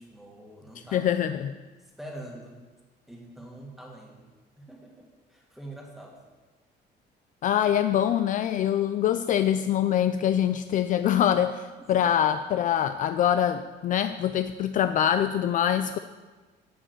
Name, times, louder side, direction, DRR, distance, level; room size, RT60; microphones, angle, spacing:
voice 1, 0.0-1.1 2.0-2.7 3.1-4.3 4.6-6.2 11.8-12.1, right 1 dB, ahead, -1 dB, 1.9 m, -45 dB
voice 2, 0.9-1.5 7.4-16.0, left 10 dB, 45° left, 10 dB, 0.4 m, -24 dB
11.0 x 6.3 x 8.0 m, 1.3 s
cardioid pair, 165°, 18 cm